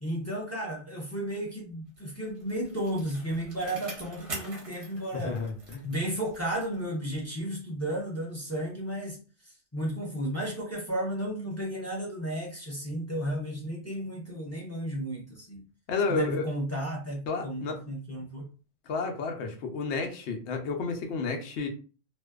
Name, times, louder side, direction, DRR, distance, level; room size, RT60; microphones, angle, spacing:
voice 1, 0.0-5.4 5.8-15.7 16.1-18.5, right 1 dB, 20° left, -3 dB, 0.5 m, -33 dB
Bicycle, 2.0-6.9 7.2-7.3, right 2 dB, 35° right, 0.6 m, -44 dB
voice 2, 5.2-5.9 15.9-16.5 17.3-17.8 18.9-21.7, left 4 dB, 70° left, 4 dB, 0.8 m, -31 dB
2.5 x 2.1 x 2.3 m, 0.36 s
omnidirectional pair, 1.3 m